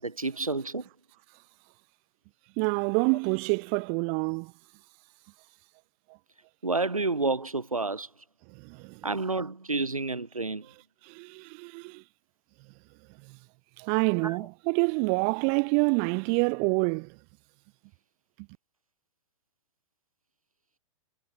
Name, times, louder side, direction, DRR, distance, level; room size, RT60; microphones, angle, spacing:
voice 1, 0.0-0.9 6.6-8.1 9.0-10.7 14.2-14.4, right 3 dB, 85° right, 5.6 m, -29 dB
voice 2, 2.6-4.5 8.6-9.0 11.0-12.0 13.3-13.4 13.8-17.2, right 40 dB or more, 40° right, 2.4 m, -27 dB
figure-of-eight pair, 105°, 17 cm